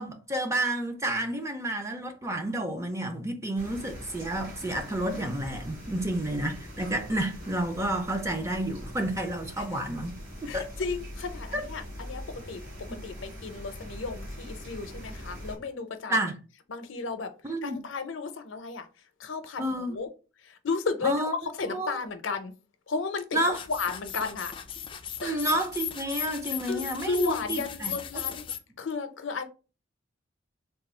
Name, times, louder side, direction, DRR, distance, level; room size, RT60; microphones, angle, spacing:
voice 1, 0.0-10.2 10.4-10.6 11.5-11.6 12.9-13.0 16.1-16.4 17.4-17.8 19.6-20.0 21.0-22.0 23.3-23.6 25.2-28.2, right 1 dB, 15° right, 0.6 m, -30 dB
sound 1, 3.6-15.6, equal, 70° right, 1.8 m, -42 dB
voice 2, 10.5-12.6 13.0-16.2 16.7-17.3 17.6-18.9 19.2-20.1 20.4-21.3 21.6-22.5 22.9-23.4 23.7-24.5 25.2-25.4 26.7-28.5 28.8-29.4, left 4 dB, 75° left, 0.6 m, -33 dB
sound 2, 23.5-28.6, left 9 dB, 25° left, 0.3 m, -36 dB
3.5 x 2.3 x 4.2 m
head